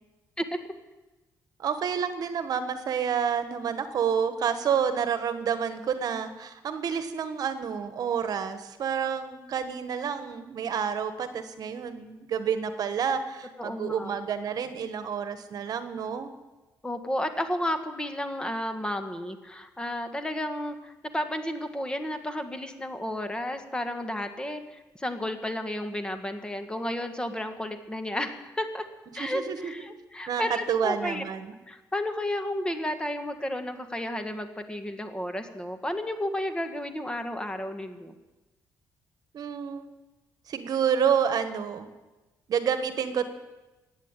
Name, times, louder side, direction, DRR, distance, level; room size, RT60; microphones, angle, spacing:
voice 1, 1.6-16.3 29.2-29.8 30.3-31.5 39.3-39.8 40.5-41.9 42.5-43.3, right 7 dB, 60° right, 10 dB, 1.3 m, -29 dB
voice 2, 13.6-14.1 16.8-28.9 29.1-31.2 31.7-38.1, left 1 dB, 10° left, 7 dB, 1.6 m, -32 dB
15.5 x 9.4 x 9.0 m, 1.1 s
cardioid pair, 105°, 7 cm